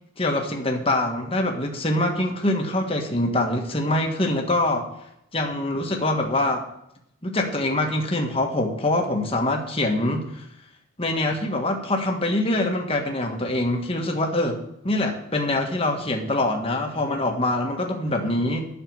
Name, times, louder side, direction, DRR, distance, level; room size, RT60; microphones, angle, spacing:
voice 1, 0.2-4.9 5.3-6.6 7.2-10.4 11.0-18.7, left 1 dB, 25° left, 2 dB, 1.5 m, -24 dB
9.3 x 6.8 x 8.6 m, 0.79 s
head